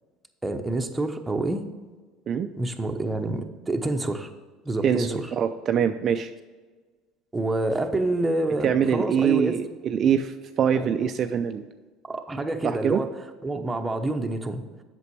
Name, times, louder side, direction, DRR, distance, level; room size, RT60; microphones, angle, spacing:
voice 1, 0.4-1.6 2.6-4.3 4.6-5.2 7.3-9.5 10.7-10.9 12.1-13.1 13.4-14.6, right 2 dB, 15° right, 5 dB, 0.9 m, -27 dB
voice 2, 4.8-6.3 8.6-11.6 12.6-13.0, right 8 dB, 45° right, 7 dB, 0.4 m, -24 dB
8.0 x 6.0 x 4.7 m, 1.4 s
supercardioid pair, 85°, 0 cm